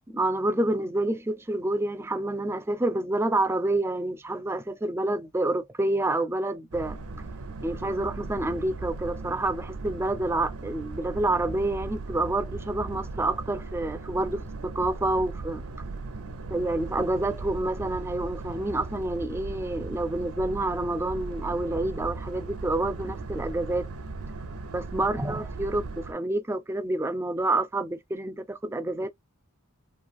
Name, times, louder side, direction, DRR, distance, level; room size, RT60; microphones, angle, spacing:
voice 1, 0.1-7.0 7.6-15.6 16.5-23.9 24.7-29.1, right 2 dB, 10° right, 0.3 m, -28 dB
Boat Water vehicle, 6.7-26.1, right 3 dB, 80° right, 0.6 m, -37 dB
3.0 x 2.4 x 2.4 m
head